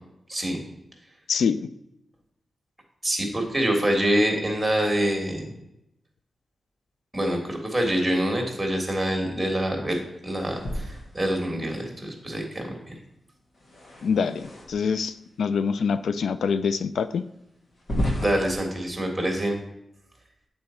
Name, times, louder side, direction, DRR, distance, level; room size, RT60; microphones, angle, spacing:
voice 1, 0.3-0.6 3.0-5.5 7.1-12.7 18.2-19.6, right 1 dB, 10° right, 2 dB, 1.5 m, -25 dB
voice 2, 1.3-1.7 14.0-17.2, left 6 dB, 90° left, 12 dB, 0.3 m, -25 dB
sound 1, 10.4-11.8 13.5-15.0 15.8-15.9 16.5-16.6 17.7-18.6, equal, 45° left, 1.3 m, -32 dB
8.8 x 4.2 x 4.3 m, 0.84 s
wide cardioid pair, 140°, 0 cm